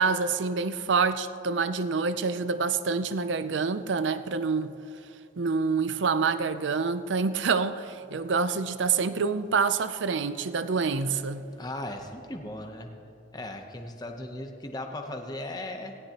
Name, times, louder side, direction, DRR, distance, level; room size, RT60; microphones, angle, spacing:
voice 1, 0.0-4.7 5.4-11.5, right 5 dB, 75° right, 0.5 m, -27 dB
voice 2, 11.6-12.9 13.3-16.0, left 1 dB, 20° left, 0.8 m, -37 dB
18.0 x 16.5 x 3.0 m
head